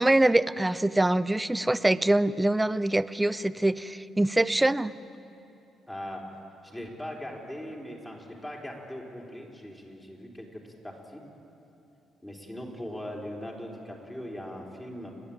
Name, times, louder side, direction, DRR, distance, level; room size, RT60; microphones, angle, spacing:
voice 1, 0.0-5.0, right 1 dB, 10° right, 16 dB, 0.5 m, -24 dB
voice 2, 5.9-6.2 6.6-11.2 12.2-15.1, equal, 10° left, -1 dB, 3.9 m, -40 dB
30.0 x 10.5 x 8.7 m, 2.8 s
cardioid pair, 90°, 0 cm